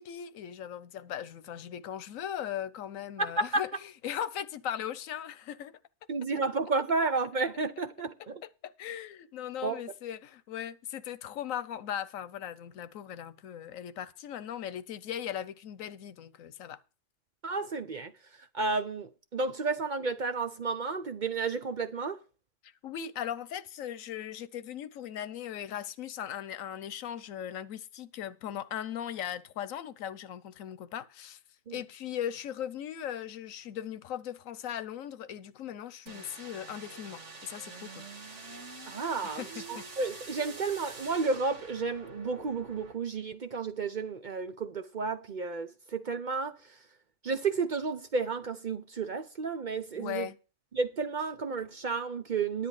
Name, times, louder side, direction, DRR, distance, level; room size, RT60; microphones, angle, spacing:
voice 1, 0.0-5.7 8.4-16.8 22.6-31.4 31.7-38.0 39.2-39.5 50.0-50.4, left 10 dB, 90° left, 1.1 m, -38 dB
voice 2, 3.2-3.6 6.1-8.4 9.6-9.8 17.4-22.2 31.7-31.8 38.8-46.8 47.2-50.3 50.7-52.7, right 4 dB, 50° right, 0.6 m, -32 dB
sound 1, 36.1-42.9, right 3 dB, 65° right, 2.1 m, -46 dB
10.5 x 9.1 x 4.8 m
omnidirectional pair, 1.3 m